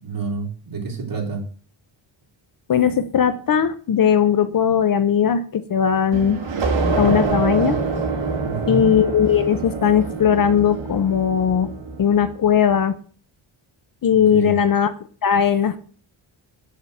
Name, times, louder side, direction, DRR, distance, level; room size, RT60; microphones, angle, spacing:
voice 1, 0.0-1.4 8.4-8.9 14.3-14.5, right 4 dB, 40° right, 1 dB, 3.4 m, -28 dB
voice 2, 2.7-6.4 7.0-7.8 8.7-11.7 12.0-13.0 14.0-14.9 15.2-15.8, left 8 dB, 45° left, 11 dB, 0.8 m, -18 dB
sound 1, 6.1-12.5, right 4 dB, 65° right, 3.6 m, -25 dB
8.7 x 6.6 x 7.8 m, 0.42 s
wide cardioid pair, 175°, 50 cm